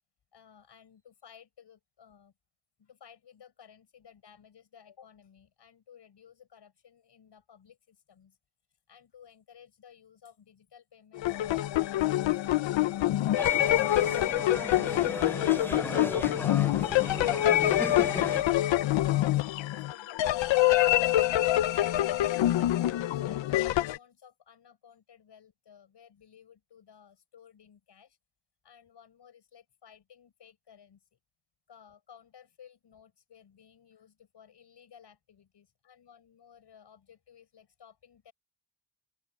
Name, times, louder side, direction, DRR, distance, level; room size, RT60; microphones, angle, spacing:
voice 1, 0.3-2.3 2.8-8.4 8.9-12.7 13.2-17.0 19.0-28.2 28.6-31.2 31.7-38.3, left 8 dB, 65° left, 6.5 m, -56 dB
sound 1, 11.1-24.0, left 14 dB, 85° left, 0.9 m, -26 dB
sound 2, 13.4-18.4, left 1 dB, 5° left, 0.6 m, -37 dB
open air
supercardioid pair, 55°, 44 cm